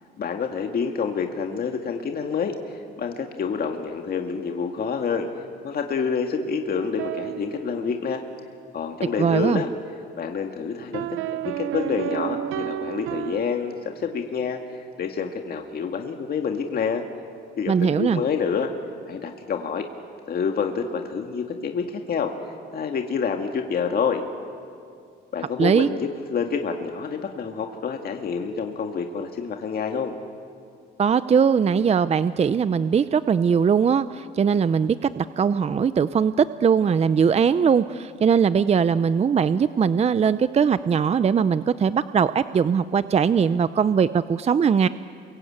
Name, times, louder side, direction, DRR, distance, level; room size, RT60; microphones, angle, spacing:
voice 1, 0.2-5.3 5.6-8.2 8.7-9.7 10.2-11.1 11.3-17.0 17.6-18.7 19.1-19.9 20.3-22.3 22.7-24.2 25.3-30.1, left 6 dB, 50° left, 3 dB, 2.0 m, -28 dB
sound 1, 6.8-8.4 10.9-14.2, right 11 dB, 80° right, 0.8 m, -32 dB
voice 2, 9.2-9.6 17.7-18.2 25.6-25.9 31.0-44.9, right 6 dB, 30° right, 14 dB, 0.6 m, -20 dB
28.5 x 23.5 x 8.8 m, 2.3 s
cardioid pair, 100°, 21 cm